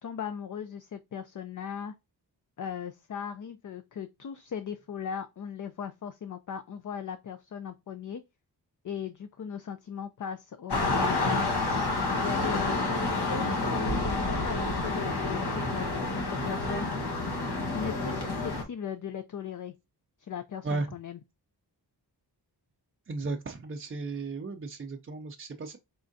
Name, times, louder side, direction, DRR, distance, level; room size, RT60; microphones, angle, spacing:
voice 1, 0.0-1.9 2.6-8.2 8.8-11.5 12.2-12.8 13.1-16.9 17.7-19.7 20.2-21.2, left 7 dB, 50° left, 0.4 m, -38 dB
sound 1, 10.7-18.6, left 2 dB, 65° left, 1.2 m, -29 dB
voice 2, 23.1-25.8, right 3 dB, 30° right, 0.4 m, -35 dB
4.3 x 3.6 x 2.5 m
wide cardioid pair, 75°, 42 cm